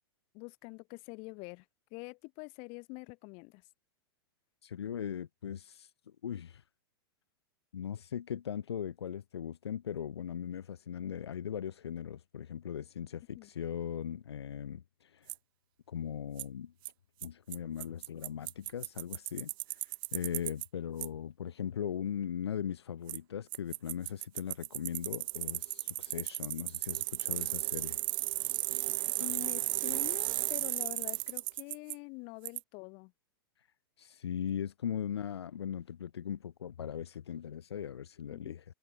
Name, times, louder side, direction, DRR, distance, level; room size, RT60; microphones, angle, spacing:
voice 1, 0.3-1.7 1.9-3.6 13.4-13.5 29.2-33.1 38.3-38.6, left 31 dB, 50° left, 7.6 m, -45 dB
voice 2, 4.6-6.6 7.7-15.3 15.9-16.7 17.2-28.0 34.0-38.6, left 8 dB, 85° left, 1.5 m, -39 dB
Bicycle, 15.3-15.4 16.4-16.5 16.9-17.0 17.2-17.3 17.5-17.6 17.8-20.7 21.0-21.1 23.1-23.2 23.5-31.9 32.5-32.6, right 21 dB, 60° right, 1.7 m, -35 dB
hypercardioid pair, 115°, 13 cm